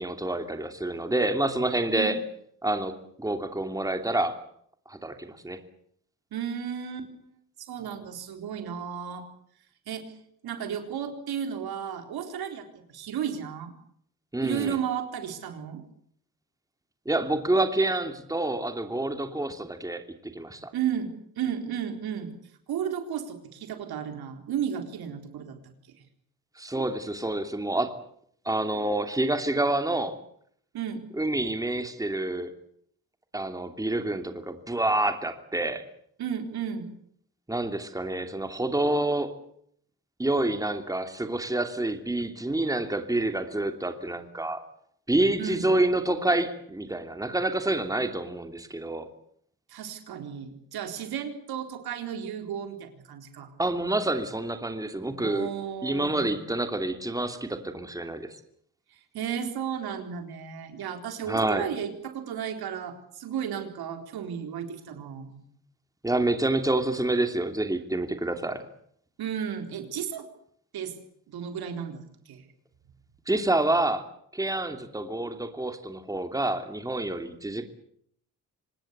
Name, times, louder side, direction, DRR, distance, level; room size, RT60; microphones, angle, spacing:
voice 1, 0.0-2.2 2.6-4.4 4.9-5.6 14.3-14.8 17.0-20.7 26.6-27.9 28.4-30.1 31.1-32.5 33.3-35.8 37.5-39.3 40.2-44.6 45.1-49.1 53.6-55.5 55.8-58.3 61.3-61.7 66.0-68.7 73.3-74.0 74.3-77.6, right 2 dB, 10° right, 7 dB, 2.9 m, -28 dB
voice 2, 6.3-7.4 7.7-9.2 9.9-10.2 10.4-13.7 14.4-15.8 20.7-22.3 22.7-25.6 30.7-31.0 36.2-36.9 45.4-45.7 49.7-53.5 55.2-56.4 58.9-65.5 69.2-70.3 70.7-70.9 71.3-72.4, right 8 dB, 90° right, 6 dB, 4.1 m, -34 dB
26.0 x 19.5 x 8.2 m, 0.66 s
cardioid pair, 120°, 36 cm